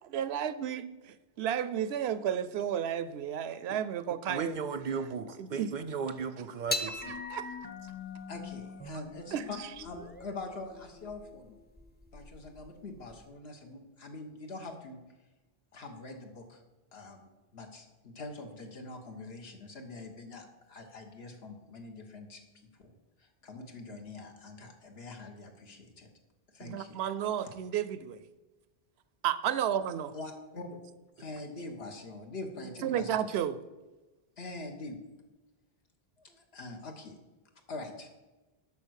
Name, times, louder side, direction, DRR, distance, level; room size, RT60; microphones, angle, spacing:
voice 1, 0.1-4.6 5.4-5.7 6.8-6.9 7.3-7.5 9.3-9.7 26.6-28.2 29.2-30.1 32.8-33.6, right 9 dB, 85° right, 0.8 m, -32 dB
voice 2, 4.3-7.2, right 5 dB, 55° right, 0.6 m, -36 dB
sound 1, 6.7-13.2, left 2 dB, 15° left, 0.4 m, -41 dB
voice 3, 8.3-9.6 9.8-11.6 12.1-15.0 15.7-16.6 16.9-22.4 22.8-22.9 23.2-26.1 26.5-27.0 27.4-27.6 30.1-30.8 31.2-33.2 34.4-35.0 36.2-37.2 37.7-38.1, left 2 dB, 75° left, 1.5 m, -44 dB
8.7 x 5.9 x 6.4 m
omnidirectional pair, 1.0 m